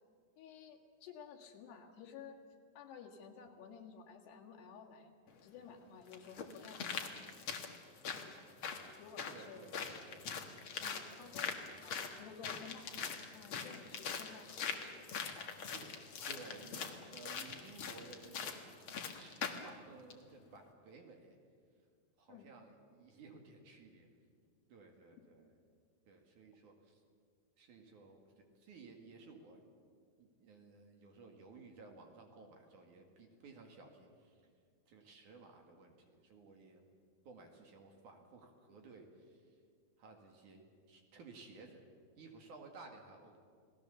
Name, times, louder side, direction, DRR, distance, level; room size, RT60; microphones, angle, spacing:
voice 1, 0.4-2.4 2.8-5.1 5.4-6.9 8.2-8.4 9.0-9.6 10.8-12.9 13.3-15.1 15.4-15.7 22.3-22.5, left 7 dB, 80° left, 1 dB, 4.0 m, -54 dB
sound 1, 5.3-5.4 6.1-19.7 20.1-20.2, left 6 dB, 60° left, 1.4 m, -43 dB
voice 2, 9.3-10.3 11.2-11.4 15.7-15.9 16.2-18.7 19.2-21.4 22.2-24.1 24.7-25.5 26.1-27.0 27.6-29.7 30.2-34.5 34.9-36.8 37.2-39.6 40.0-41.8 42.2-43.4, right 3 dB, 55° right, 3 dB, 3.2 m, -56 dB
29.5 x 19.0 x 7.0 m, 2.1 s
omnidirectional pair, 4.7 m